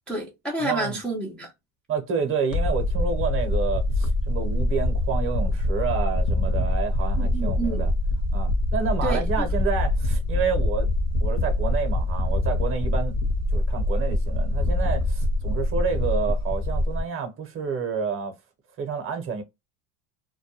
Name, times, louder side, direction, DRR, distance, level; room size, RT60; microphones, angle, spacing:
voice 1, 0.1-1.5 7.2-7.9 9.0-9.5, right 2 dB, ahead, 0.4 m, -29 dB
voice 2, 0.6-1.0 1.9-7.9 8.3-10.9 11.2-13.1 13.5-18.3 18.8-19.4, right 5 dB, 30° right, 0.8 m, -29 dB
sound 1, 2.5-17.0, left 1 dB, 35° left, 0.8 m, -24 dB
2.3 x 2.1 x 2.9 m
supercardioid pair, 115°, 42 cm